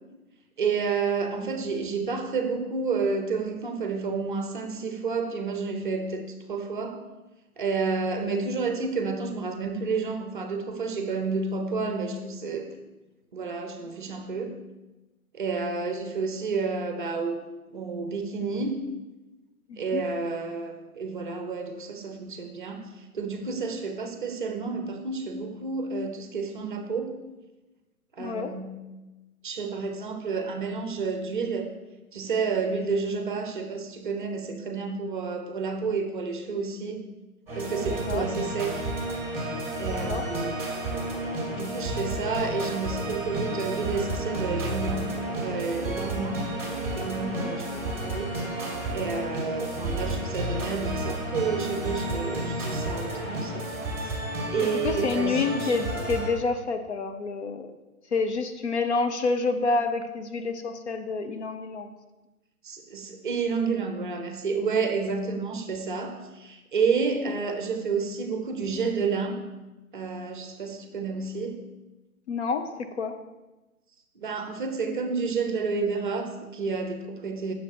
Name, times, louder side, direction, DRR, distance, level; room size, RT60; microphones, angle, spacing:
voice 1, 0.6-7.1 7.6-12.8 13.3-14.6 15.3-17.4 17.7-18.8 19.8-27.2 28.1-28.8 29.4-31.7 32.1-37.0 37.5-38.9 39.7-40.6 41.5-45.1 45.4-46.4 46.9-48.5 48.9-53.7 54.0-54.2 54.5-55.7 62.6-69.4 69.9-71.7 74.2-77.5, right 4 dB, 35° right, 5 dB, 0.7 m, -30 dB
voice 2, 19.7-20.0 28.2-28.5 37.8-38.3 40.1-40.2 47.2-47.5 54.8-57.7 58.1-61.9 72.3-73.2, left 4 dB, 50° left, 6 dB, 0.7 m, -28 dB
sound 1, 37.5-56.3, right 1 dB, 5° right, 2.1 m, -31 dB
8.9 x 6.6 x 2.9 m, 1.1 s
figure-of-eight pair, 130°, 44 cm